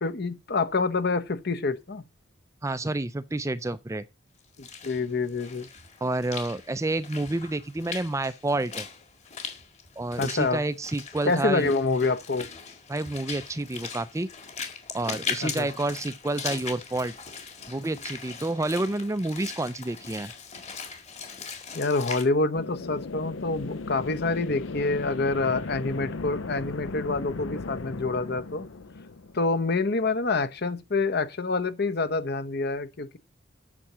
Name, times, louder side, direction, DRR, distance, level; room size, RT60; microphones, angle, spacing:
voice 1, 0.0-2.0 4.8-5.7 10.2-10.6 11.3-12.5 15.4-15.7 21.7-28.7 29.3-33.2, left 3 dB, 50° left, 1.0 m, -27 dB
voice 2, 2.6-4.0 6.0-8.9 10.0-11.8 12.9-14.3 14.9-17.1 17.7-20.3, right 2 dB, 15° right, 0.4 m, -29 dB
Walk footsteps / Splash splatter, 4.4-22.2, left 5 dB, 35° left, 1.9 m, -39 dB
sound 1, 22.5-30.1, left 3 dB, 70° left, 0.6 m, -37 dB
8.6 x 6.7 x 6.1 m
head